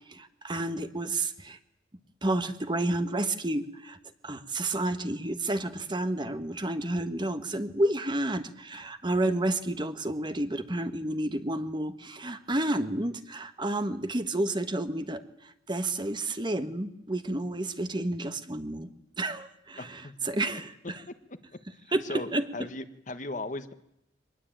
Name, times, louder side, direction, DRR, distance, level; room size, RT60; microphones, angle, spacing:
voice 1, 0.1-1.6 2.2-4.0 4.2-15.2 15.7-18.9 19.2-21.0 21.9-22.4, right 1 dB, 25° right, 9 dB, 1.4 m, -30 dB
voice 2, 19.8-20.1 21.5-21.6 21.9-23.7, left 2 dB, 45° left, 10 dB, 1.4 m, -38 dB
24.0 x 20.0 x 8.9 m, 0.80 s
head